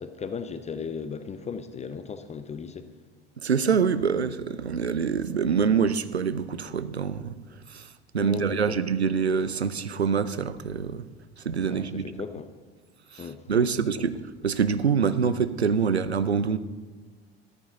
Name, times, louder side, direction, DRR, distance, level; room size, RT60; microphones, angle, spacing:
voice 1, 0.0-2.9 8.2-8.8 11.7-12.5 13.2-13.5, left 6 dB, 20° left, 10 dB, 0.7 m, -36 dB
voice 2, 3.4-7.4 7.7-7.9 8.1-11.0 11.4-12.0 13.1-14.2 14.4-16.6, right 6 dB, 85° right, 14 dB, 0.6 m, -25 dB
13.5 x 13.5 x 4.0 m, 1.5 s
figure-of-eight pair, 65°, 31 cm